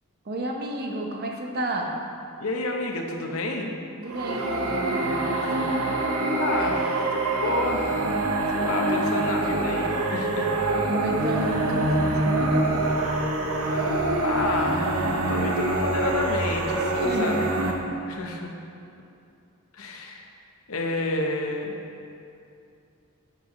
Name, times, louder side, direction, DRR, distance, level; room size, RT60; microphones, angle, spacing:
voice 1, 0.3-1.9 4.0-5.7 10.9-12.7 17.0-17.4, right 1 dB, 45° right, 1 dB, 0.8 m, -31 dB
voice 2, 2.4-3.7 6.3-8.2 8.5-10.5 14.2-17.5 18.1-18.5 19.7-20.2 20.7-21.8, left 2 dB, 75° left, 2 dB, 0.8 m, -29 dB
sound 1, 4.1-17.7, right 2 dB, 80° right, 0.8 m, -25 dB
10.0 x 5.5 x 3.1 m, 2.6 s
head